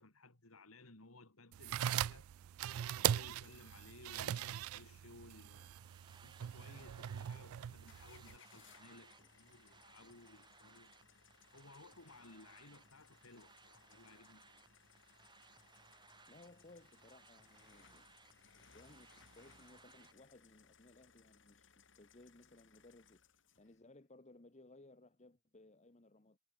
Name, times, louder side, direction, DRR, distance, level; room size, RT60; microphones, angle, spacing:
voice 1, 0.0-2.3 2.7-5.7 6.2-10.9 11.4-14.6, left 2 dB, 85° left, 2.8 m, -59 dB
sound 1, 1.5-8.4, right 10 dB, 90° right, 0.3 m, -40 dB
sound 2, 5.5-20.1, right 4 dB, 20° right, 3.1 m, -64 dB
sound 3, 7.9-23.8, left 6 dB, 60° left, 5.4 m, -66 dB
voice 2, 16.3-18.1 18.5-19.1 19.4-26.4, left 2 dB, 35° left, 1.2 m, -61 dB
head